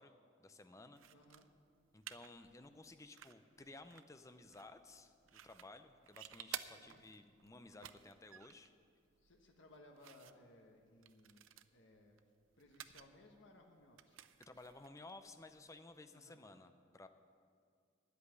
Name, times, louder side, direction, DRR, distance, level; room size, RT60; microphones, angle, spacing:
voice 1, 0.0-1.0 1.9-8.7 14.4-17.1, left 2 dB, 15° left, 9 dB, 0.5 m, -56 dB
sound 1, 0.9-16.1, right 11 dB, 75° right, 0.5 m, -56 dB
voice 2, 1.1-1.5 6.7-7.0 9.2-12.2 12.6-14.2 16.1-16.4, left 1 dB, 65° left, 2 dB, 1.3 m, -63 dB
10.0 x 8.3 x 9.7 m, 2.2 s
head